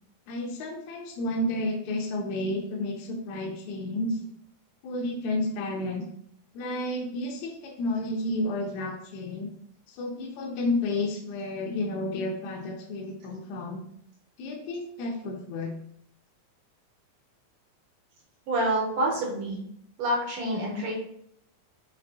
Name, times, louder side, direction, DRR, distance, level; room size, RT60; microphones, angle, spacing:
voice 1, 0.3-4.2 4.8-6.0 6.5-9.5 9.9-13.8 14.4-15.8, left 1 dB, 80° left, 0 dB, 1.9 m, -31 dB
voice 2, 18.5-19.6 20.0-20.9, right 1 dB, 70° right, -2 dB, 2.0 m, -27 dB
5.2 x 3.5 x 2.7 m, 0.70 s
omnidirectional pair, 3.5 m